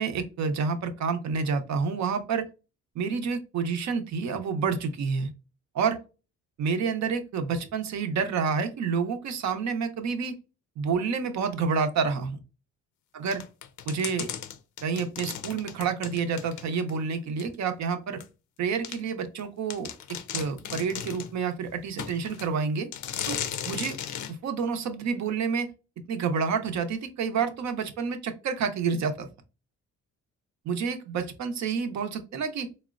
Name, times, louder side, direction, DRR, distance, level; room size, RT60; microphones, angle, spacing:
voice 1, 0.0-2.4 2.9-5.3 5.7-6.0 6.6-10.3 10.8-12.4 13.2-13.4 13.9-14.3 14.8-18.2 18.6-19.9 20.3-22.9 23.3-23.4 23.7-24.0 24.3-25.7 26.1-29.3 30.6-32.7, right 5 dB, 65° right, 8 dB, 0.7 m, -29 dB
sound 1, 13.3-17.0 17.4-17.5 18.2-18.3 18.8-19.0 19.4-19.5 19.7-21.3 22.0-22.5 22.9-24.3, left 9 dB, 75° left, 0.5 m, -36 dB
4.2 x 2.0 x 2.4 m, 0.30 s
cardioid pair, 90°, 30 cm